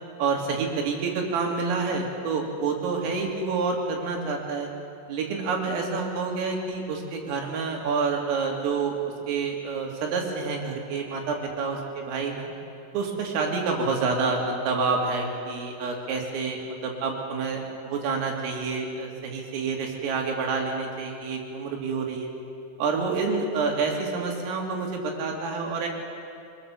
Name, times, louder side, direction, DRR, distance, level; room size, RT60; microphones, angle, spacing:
voice 1, 0.2-4.7 5.1-12.5 12.9-22.3 22.8-25.9, right 4 dB, 90° right, 0 dB, 5.2 m, -28 dB
24.0 x 20.5 x 7.3 m, 2.5 s
omnidirectional pair, 5.8 m